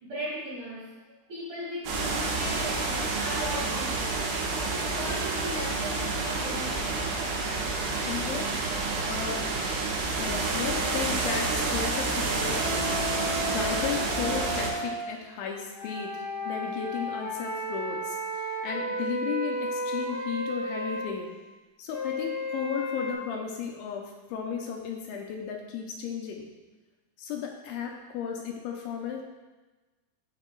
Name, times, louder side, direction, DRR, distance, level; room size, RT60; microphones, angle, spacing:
voice 1, 0.0-4.3 4.7-7.1, equal, 55° right, -7 dB, 2.3 m, -37 dB
sound 1, 1.9-14.7, right 3 dB, 85° right, 3.6 m, -29 dB
voice 2, 8.0-8.5 9.1-9.4 10.2-12.9 13.5-21.3 21.8-26.4 27.2-29.2, left 7 dB, 80° left, 1 dB, 2.9 m, -34 dB
sound 2, 10.5-15.0 15.7-21.1 21.9-23.1, equal, 65° left, 1.1 m, -34 dB
13.5 x 4.8 x 2.3 m, 1.2 s
omnidirectional pair, 5.4 m